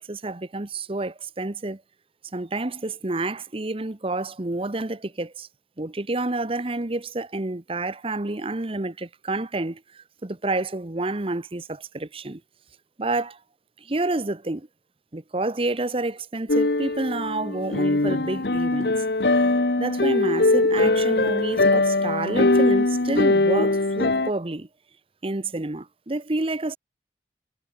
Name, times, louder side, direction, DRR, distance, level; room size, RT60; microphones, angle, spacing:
voice 1, 0.0-1.8 2.3-5.5 5.8-12.4 13.0-13.4 13.8-14.7 15.1-19.0 19.8-24.7 25.2-26.8, right 2 dB, 30° right, 0.9 m, -29 dB
sound 1, 16.5-24.3, left 2 dB, 65° left, 1.2 m, -21 dB
head